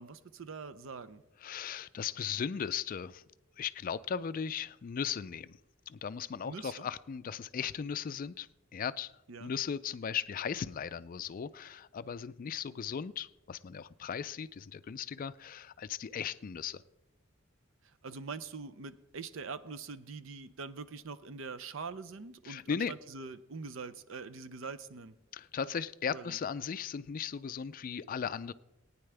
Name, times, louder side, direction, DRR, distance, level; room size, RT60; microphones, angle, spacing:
voice 1, 0.0-1.2 6.4-6.9 9.3-9.5 18.0-25.1 26.1-26.4, right 4 dB, 70° right, 13 dB, 0.6 m, -43 dB
voice 2, 1.4-3.2 3.6-5.6 5.9-8.5 8.7-9.1 9.4-16.8 22.4-22.9 25.3-28.5, left 7 dB, 45° left, 15 dB, 0.4 m, -37 dB
18.5 x 9.7 x 3.4 m, 0.92 s
head